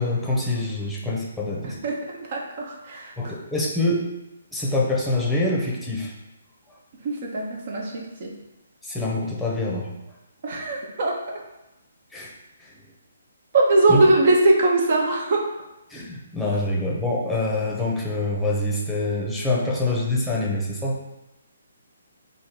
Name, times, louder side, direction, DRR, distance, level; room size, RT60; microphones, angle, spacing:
voice 1, 0.0-1.8 3.2-4.0 4.5-6.1 8.8-9.9 12.1-12.3 12.6-12.7 13.9-14.0 15.9-21.0, left 2 dB, 5° left, -4 dB, 0.9 m, -25 dB
voice 2, 1.6-1.9 2.3-3.1 7.0-8.3 10.4-11.1 13.5-15.4, right 2 dB, 50° right, 0 dB, 1.0 m, -21 dB
3.7 x 2.7 x 4.5 m, 0.94 s
hypercardioid pair, 145°, 0 cm